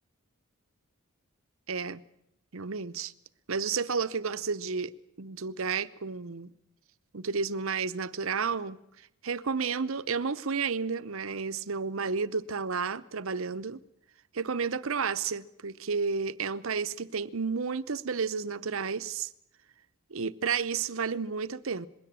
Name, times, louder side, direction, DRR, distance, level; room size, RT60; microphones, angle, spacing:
voice 1, 1.7-2.0 2.5-3.1 3.5-4.9 5.2-6.5 7.1-8.8 9.2-13.8 14.3-19.3 20.1-21.9, right 5 dB, 65° right, 0.8 m, -31 dB
21.0 x 17.0 x 8.7 m
head